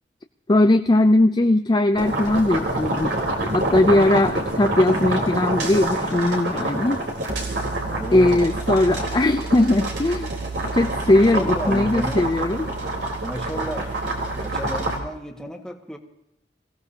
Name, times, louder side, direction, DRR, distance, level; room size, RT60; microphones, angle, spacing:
voice 1, 0.5-3.2 3.5-7.0 8.1-10.3 10.7-12.7, left 1 dB, 25° left, 7 dB, 0.4 m, -19 dB
sound 1, 1.9-15.0, right 2 dB, 75° right, 3.9 m, -26 dB
voice 2, 7.9-8.4 11.0-12.2 13.2-13.9 14.4-16.0, equal, 5° left, 2 dB, 1.8 m, -32 dB
26.5 x 16.5 x 2.9 m, 0.82 s
head